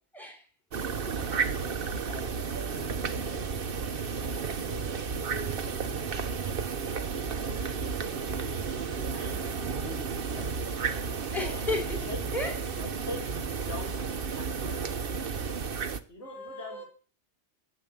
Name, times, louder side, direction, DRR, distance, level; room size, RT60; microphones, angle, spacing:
voice 1, 0.1-0.4 11.3-12.0 12.3-12.8 16.2-16.8, left 2 dB, ahead, 2 dB, 4.4 m, -34 dB
sound 1, 0.7-16.0, right 5 dB, 50° right, 1.2 m, -32 dB
voice 2, 1.5-2.3 2.5-5.8 6.4-7.8 8.0-8.7 9.0-11.0 11.4-11.6 12.1-12.2 12.8-14.8 16.1-16.9, left 1 dB, 65° left, -1 dB, 6.1 m, -45 dB
sound 2, 9.7-15.0, right 3 dB, 20° left, 6.0 m, -51 dB
15.5 x 7.7 x 8.7 m, 0.39 s
omnidirectional pair, 1.2 m